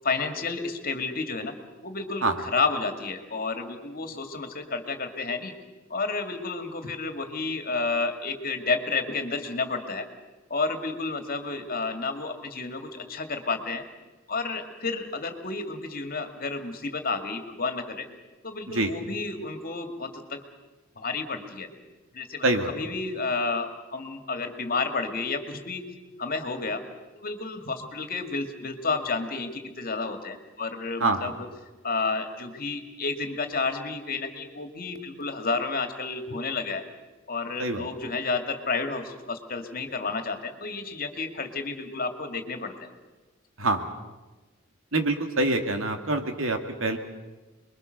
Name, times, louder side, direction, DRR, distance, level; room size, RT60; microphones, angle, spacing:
voice 1, 0.0-1.5 1.8-5.5 5.9-10.0 10.5-13.8 14.3-18.1 18.4-20.4 21.0-21.7 22.1-25.8 26.2-26.8 27.1-31.5 31.8-36.8 37.3-42.9, left 4 dB, 45° left, 6 dB, 2.4 m, -31 dB
voice 2, 22.4-22.7 31.0-31.3 37.6-37.9 43.6-43.9 44.9-47.0, right 2 dB, 80° right, 6 dB, 2.4 m, -25 dB
27.5 x 22.0 x 6.7 m, 1.2 s
head